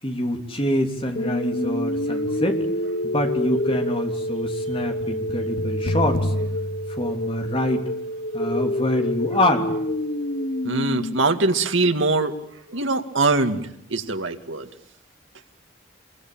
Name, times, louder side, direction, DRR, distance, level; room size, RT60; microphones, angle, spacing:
voice 1, 0.0-2.6 3.0-6.3 7.0-7.9 8.3-9.7, left 1 dB, 25° left, 4 dB, 3.3 m, -25 dB
sound 1, 1.2-11.2, left 1 dB, 45° left, 1.0 m, -26 dB
voice 2, 10.6-12.4 12.7-14.7, right 3 dB, 80° right, 7 dB, 2.2 m, -22 dB
26.0 x 23.5 x 8.8 m, 0.72 s
head